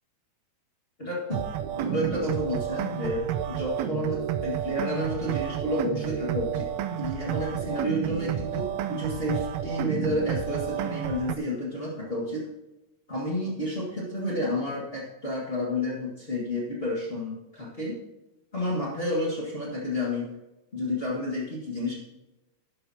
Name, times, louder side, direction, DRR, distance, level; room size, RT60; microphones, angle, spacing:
voice 1, 1.0-1.4 1.7-6.7 7.0-12.5 13.1-18.0 18.5-20.3 20.7-21.9, left 1 dB, 25° left, -5 dB, 1.7 m, -30 dB
sound 1, 1.3-11.4, right 10 dB, 80° right, 1.8 m, -30 dB
11.5 x 11.0 x 2.9 m, 0.98 s
omnidirectional pair, 3.5 m